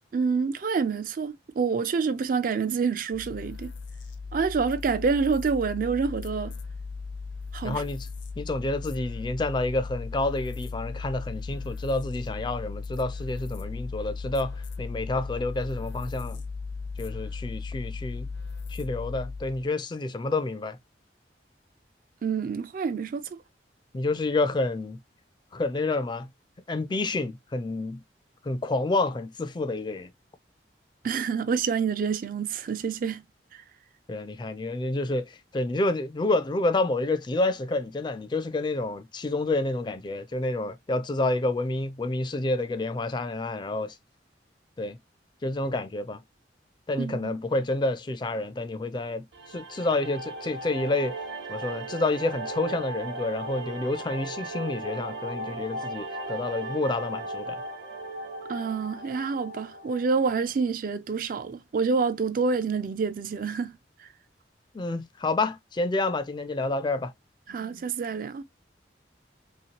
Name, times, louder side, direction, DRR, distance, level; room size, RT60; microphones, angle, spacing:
voice 1, 0.1-3.7 4.3-6.5 7.5-7.8 22.2-23.2 31.0-33.2 47.0-47.1 58.5-63.7 67.5-68.4, right 5 dB, 50° right, 0.3 m, -27 dB
sound 1, 3.1-19.7, left 4 dB, 80° left, 0.7 m, -37 dB
voice 2, 7.6-8.1 8.4-16.4 17.0-18.3 18.7-20.8 23.9-25.0 25.5-26.3 26.7-28.0 28.4-30.1 34.1-43.9 44.8-45.0 45.4-46.2 46.9-51.1 51.5-57.6 64.7-67.1, left 2 dB, 25° left, 0.3 m, -29 dB
sound 2, 49.3-60.4, right 2 dB, 70° right, 0.9 m, -37 dB
3.1 x 2.8 x 2.8 m
head